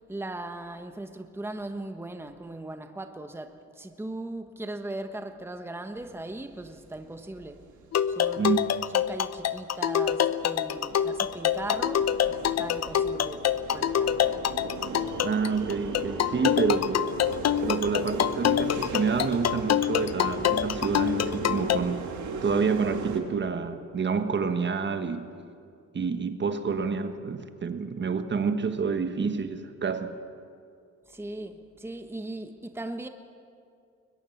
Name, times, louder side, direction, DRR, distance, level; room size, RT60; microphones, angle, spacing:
voice 1, 0.1-7.6 8.1-8.6 8.9-14.2 31.1-33.1, right 2 dB, 10° right, 1.2 m, -38 dB
sound 1, 6.0-23.2, right 4 dB, 70° right, 2.8 m, -38 dB
sound 2, 7.9-21.8, left 10 dB, 60° left, 0.8 m, -26 dB
voice 2, 8.4-8.7 15.2-17.0 17.6-22.0 22.4-25.3 25.9-30.1, right 5 dB, 35° right, 1.4 m, -28 dB
21.5 x 21.5 x 7.2 m
cardioid pair, 90°, 30 cm